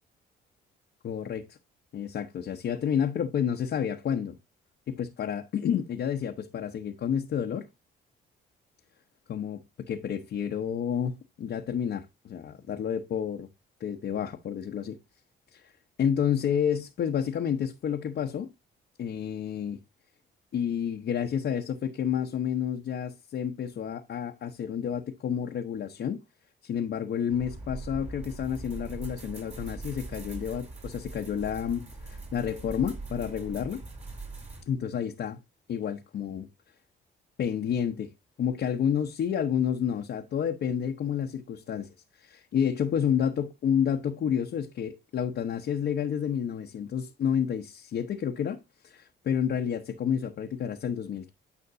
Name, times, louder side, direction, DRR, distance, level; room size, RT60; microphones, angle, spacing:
voice 1, 1.0-1.6 1.9-4.4 4.9-7.7 9.3-13.5 13.8-15.0 15.5-15.7 16.0-18.5 19.0-19.8 20.5-26.2 26.6-33.8 34.7-35.4 35.7-36.5 37.4-38.1 38.4-41.9 42.1-51.3, left 8 dB, 60° left, 0.9 m, -30 dB
sound 1, 27.3-34.6, right 3 dB, 35° right, 3.3 m, -41 dB
9.6 x 5.2 x 2.6 m
cardioid pair, 90°, 20 cm